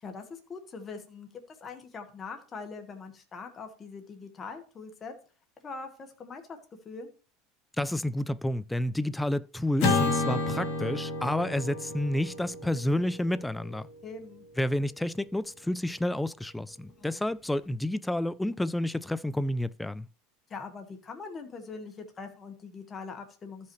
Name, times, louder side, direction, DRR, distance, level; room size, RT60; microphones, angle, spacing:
voice 1, 0.0-5.1 5.6-6.6 6.8-7.1 14.0-14.4 17.0-17.2 20.5-23.7, left 4 dB, 25° left, 1.5 m, -42 dB
voice 2, 7.8-13.9 14.6-20.1, left 1 dB, 5° left, 0.3 m, -30 dB
Acoustic guitar / Strum, 9.8-14.2, left 3 dB, 55° left, 2.5 m, -31 dB
14.0 x 5.6 x 3.1 m
supercardioid pair, 120°, 0 cm